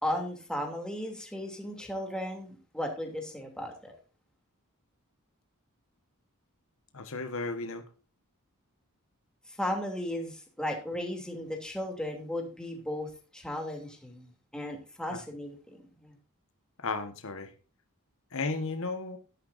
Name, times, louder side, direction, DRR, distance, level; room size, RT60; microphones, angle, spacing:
voice 1, 0.0-3.9 9.5-16.2, left 1 dB, 5° left, 2 dB, 2.8 m, -36 dB
voice 2, 6.9-7.8 16.8-17.5 18.3-19.2, left 3 dB, 65° left, 8 dB, 1.4 m, -34 dB
13.0 x 11.5 x 2.6 m, 0.35 s
head